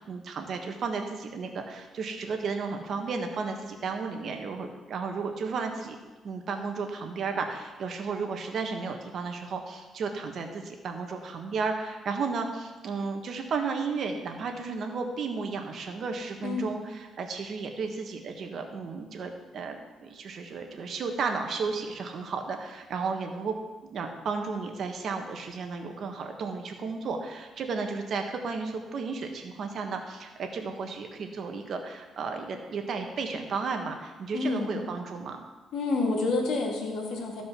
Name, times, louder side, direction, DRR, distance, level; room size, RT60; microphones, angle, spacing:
voice 1, 0.1-6.0 6.2-23.5 23.9-35.4, right 4 dB, 60° right, 4 dB, 1.5 m, -33 dB
voice 2, 16.4-16.7 34.3-34.8 35.7-37.4, left 3 dB, 80° left, 1 dB, 2.2 m, -28 dB
14.5 x 5.1 x 6.1 m, 1.2 s
cardioid pair, 90°, 0 cm